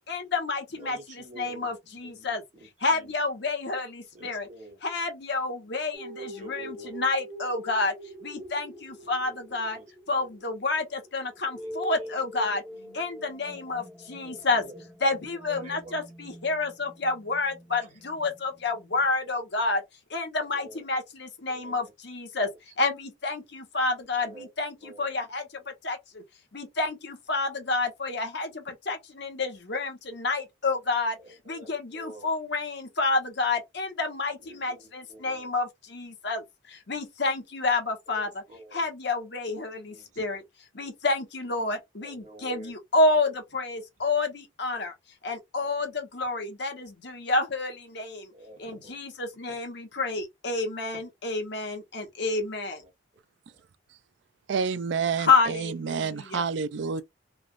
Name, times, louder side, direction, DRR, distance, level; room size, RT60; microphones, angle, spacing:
voice 1, 0.1-1.0 1.4-2.4 2.8-4.5 4.8-7.9 8.2-9.8 10.1-12.6 12.9-14.6 15.0-19.8 20.1-22.5 22.8-26.2 26.5-31.2 31.5-38.3 38.7-40.4 40.7-44.9 45.2-48.3 48.6-52.8 55.2-56.4, left 3 dB, 55° left, 1.0 m, -29 dB
voice 2, 0.7-3.1 4.1-4.8 6.1-7.1 9.2-10.3 11.6-12.1 14.2-14.8 15.5-16.0 16.5-16.6 17.8-18.0 19.2-19.4 20.5-20.9 21.5-21.8 24.2-24.5 24.8-25.1 31.2-32.3 34.4-35.5 38.1-38.8 39.8-40.4 42.0-42.7 45.6-45.7 48.3-49.0 50.9-51.0 52.3-52.9 53.5-53.6, right 1 dB, 35° right, 1.4 m, -49 dB
sound 1, 5.9-19.1, equal, ahead, 1.0 m, -44 dB
voice 3, 54.5-57.0, right 5 dB, 60° right, 0.3 m, -29 dB
3.3 x 2.4 x 2.4 m
head